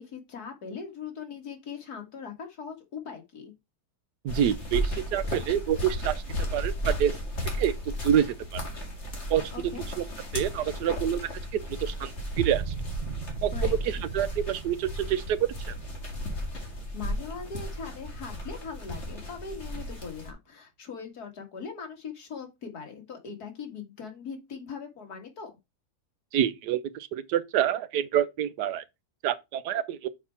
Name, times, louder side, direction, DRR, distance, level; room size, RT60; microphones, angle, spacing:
voice 1, 0.0-3.5 9.5-9.8 13.5-14.0 16.9-25.5, left 6 dB, 70° left, 2.3 m, -40 dB
voice 2, 4.2-6.1 6.5-7.1 7.6-7.7 8.0-8.3 8.5-8.6 9.3-9.4 10.0-10.1 10.3-11.2 11.8-12.7 13.4-13.5 13.8-15.4 15.7-15.8 26.3-28.8 29.2-30.1, right 10 dB, 85° right, 1.3 m, -27 dB
sound 1, 4.3-20.3, equal, 45° left, 2.4 m, -34 dB
sound 2, 12.4-18.4, right 9 dB, 70° right, 0.5 m, -40 dB
6.4 x 4.6 x 5.7 m
omnidirectional pair, 1.7 m